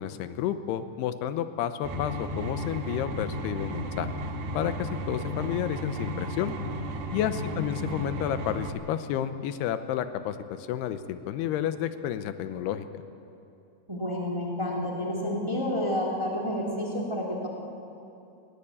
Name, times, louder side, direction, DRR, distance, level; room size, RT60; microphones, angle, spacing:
voice 1, 0.0-4.1 4.5-6.5 7.1-12.9, left 10 dB, 90° left, 11 dB, 2.9 m, -31 dB
sound 1, 1.8-8.7, equal, 75° right, 4.0 m, -34 dB
voice 2, 13.9-17.5, left 1 dB, 10° right, -2 dB, 2.1 m, -30 dB
19.5 x 17.5 x 8.7 m, 2.7 s
omnidirectional pair, 4.5 m